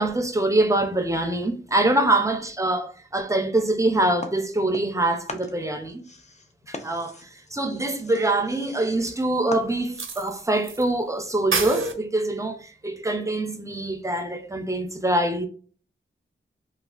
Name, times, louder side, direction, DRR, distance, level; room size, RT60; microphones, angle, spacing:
voice 1, 0.0-6.0 6.7-15.5, right 2 dB, 15° right, 0.5 m, -24 dB
sound 1, 4.2-5.0 5.3-10.1, left 2 dB, 35° left, 0.5 m, -40 dB
sound 2, 9.1-9.2 10.0-10.8 11.1-11.2 11.5-11.9, right 4 dB, 80° right, 0.5 m, -26 dB
3.2 x 2.3 x 2.4 m
wide cardioid pair, 85°, 20 cm